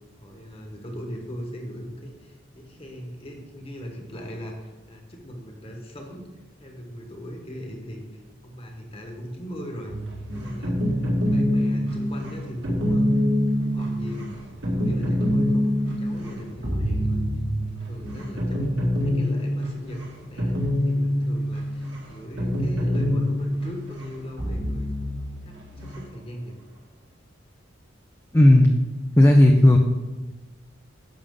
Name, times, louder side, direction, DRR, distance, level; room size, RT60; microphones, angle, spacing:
voice 1, 0.2-6.3 6.6-10.0 10.3-11.0 11.3-13.1 13.6-14.3 14.7-15.7 16.0-17.2 17.6-20.6 20.9-24.9 25.4-26.6, equal, 30° left, 2 dB, 1.4 m, -38 dB
sound 1, 9.9-26.0, equal, 60° right, 2.0 m, -25 dB
voice 2, 28.3-28.7 29.2-29.8, left 1 dB, 15° left, 2 dB, 0.6 m, -13 dB
10.5 x 6.7 x 3.7 m, 1.1 s
head